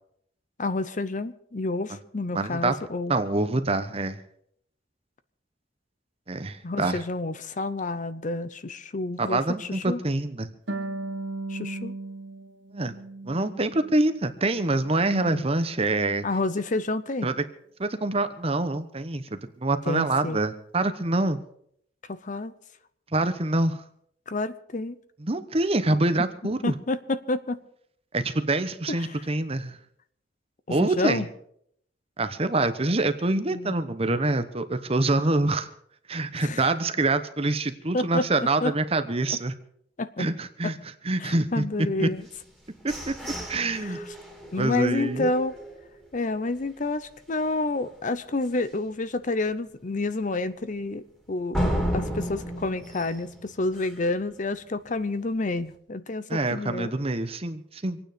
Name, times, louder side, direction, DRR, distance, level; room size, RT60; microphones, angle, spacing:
voice 1, 0.6-3.1 6.6-10.0 11.5-11.9 15.1-15.4 16.2-17.3 19.9-20.4 22.1-22.5 24.3-24.9 26.6-27.6 28.9-29.1 30.7-31.3 33.5-33.7 36.4-36.6 37.9-38.7 39.3-39.4 40.0-40.3 40.6-40.7 41.2-42.2 43.7-44.0 44.5-45.5 46.1-51.7 51.9-56.9, left 2 dB, 45° left, 13 dB, 0.7 m, -29 dB
voice 2, 2.3-2.7 3.1-4.2 6.3-7.0 9.2-10.5 12.7-13.0 13.3-16.3 17.2-17.4 17.8-21.4 23.1-23.8 25.2-26.7 28.1-29.8 30.7-31.3 32.2-35.7 36.1-39.5 40.2-40.8 41.0-42.1 42.8-43.1 43.5-44.0 44.6-45.3 56.3-58.0, right 2 dB, 30° right, 10 dB, 1.0 m, -25 dB
Harp, 10.7-14.1 14.4-15.5, right 2 dB, 85° right, 2.2 m, -37 dB
sound 1, 42.3-46.1 46.6-46.7 47.1-47.5 47.9-48.0 48.4-48.5 51.5-54.2, equal, 5° left, 2.7 m, -33 dB
26.0 x 9.3 x 5.2 m, 0.68 s
head